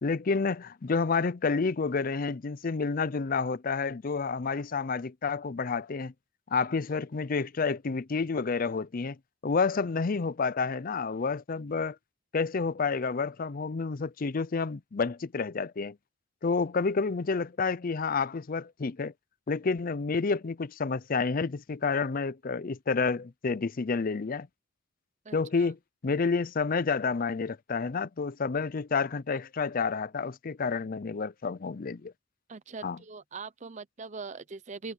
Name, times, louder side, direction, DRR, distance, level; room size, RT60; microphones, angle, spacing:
voice 1, 0.0-6.1 6.5-9.2 9.4-12.0 12.3-16.0 16.4-19.1 19.5-24.5 25.3-25.8 26.0-32.1 32.8-33.0, left 4 dB, 40° left, 0.5 m, -29 dB
voice 2, 25.3-25.7 32.5-34.9, right 4 dB, 35° right, 0.6 m, -42 dB
head